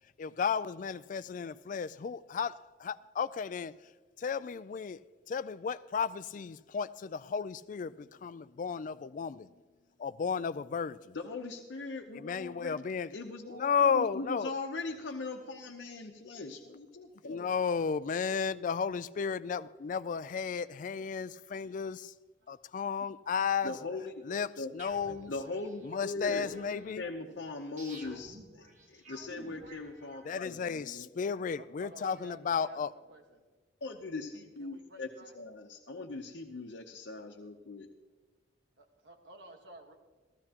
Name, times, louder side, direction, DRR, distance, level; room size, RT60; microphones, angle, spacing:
voice 1, 0.2-3.7 4.2-5.0 5.3-9.5 10.0-11.2 12.1-13.1 13.5-14.5 17.2-22.1 22.5-23.7 24.2-24.5 24.7-25.3 25.8-27.0 30.2-32.9, left 6 dB, 45° left, 0.3 m, -33 dB
voice 2, 11.1-12.8 13.1-17.5 23.6-24.1 24.6-24.7 25.3-31.1 33.8-35.1 35.3-37.9, left 3 dB, 80° left, 0.8 m, -40 dB
sound 1, 24.8-30.6, equal, 40° right, 1.4 m, -52 dB
voice 3, 27.1-27.5 31.5-33.4 34.3-35.4 38.8-40.0, right 1 dB, 65° right, 1.5 m, -53 dB
15.0 x 14.0 x 2.9 m
head